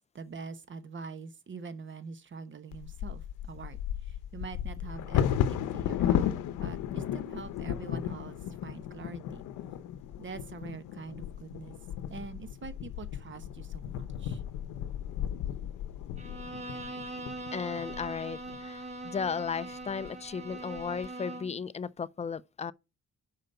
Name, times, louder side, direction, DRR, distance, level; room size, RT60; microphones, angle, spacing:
voice 1, 0.1-9.4 10.2-11.8 12.1-14.4, right 5 dB, 40° right, 1.1 m, -44 dB
Bird vocalization bird call bird song / Wind / Thunder, 2.7-18.6 19.2-19.3 19.7-20.1 20.5-21.1, left 10 dB, 90° left, 0.7 m, -34 dB
Bowed string instrument, 16.2-21.6, right 2 dB, 20° right, 1.6 m, -41 dB
voice 2, 17.5-22.7, left 6 dB, 20° left, 0.4 m, -35 dB
5.7 x 5.1 x 6.6 m
cardioid pair, 90°, 30 cm